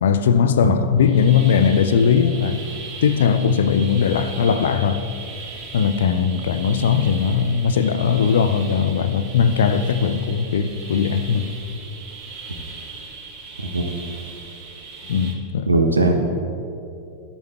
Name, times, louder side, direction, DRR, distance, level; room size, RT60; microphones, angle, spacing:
voice 1, 0.0-2.6 3.0-5.1 5.7-11.5 15.1-15.7, left 7 dB, 60° left, 0.5 m, -19 dB
sound 1, 1.0-15.3, right 4 dB, 45° right, 1.8 m, -38 dB
voice 2, 15.7-16.2, right 2 dB, 80° right, 0.9 m, -18 dB
12.0 x 8.5 x 4.5 m
figure-of-eight pair, 90°, 0 cm